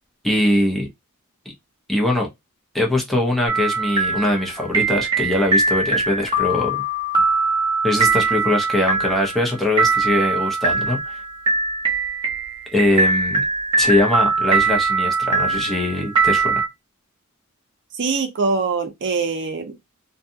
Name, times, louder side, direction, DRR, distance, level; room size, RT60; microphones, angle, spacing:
voice 1, 0.2-0.9 1.9-2.3 2.7-6.8 7.8-11.2 12.7-13.4 13.8-16.6, left 1 dB, ahead, 0.7 m, -21 dB
sound 1, 3.5-16.7, right 3 dB, 20° right, 0.9 m, -21 dB
voice 2, 17.9-19.9, right 4 dB, 55° right, 0.5 m, -23 dB
2.6 x 2.3 x 2.6 m
head